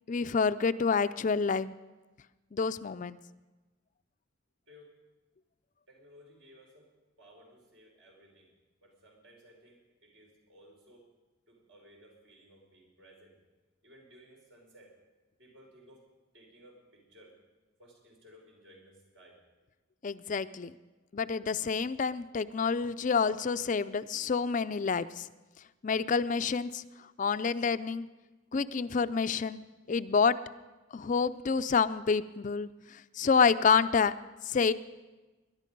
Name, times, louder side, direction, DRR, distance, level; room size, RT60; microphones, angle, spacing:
voice 1, 0.1-1.7 2.5-3.2 20.0-20.7 21.1-25.3 25.8-26.8 27.2-28.1 28.5-29.6 29.9-30.4 30.9-34.1 34.5-34.7, left 5 dB, 40° left, 13 dB, 0.4 m, -28 dB
voice 2, 5.9-6.9 7.2-8.5 8.8-11.1 11.5-13.4 13.8-15.0 15.4-16.1 16.3-17.4 17.8-19.4, equal, 70° right, -1 dB, 5.4 m, -58 dB
21.0 x 11.5 x 5.3 m, 1.2 s
head